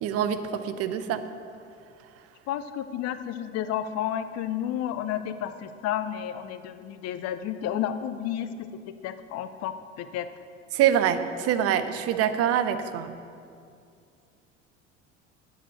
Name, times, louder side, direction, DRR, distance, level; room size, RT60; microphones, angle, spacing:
voice 1, 0.0-1.2 10.7-13.1, right 9 dB, 40° right, 10 dB, 0.7 m, -25 dB
voice 2, 2.5-10.3, left 10 dB, 40° left, 11 dB, 0.7 m, -31 dB
8.5 x 7.0 x 6.5 m, 2.4 s
figure-of-eight pair, 65°, 38 cm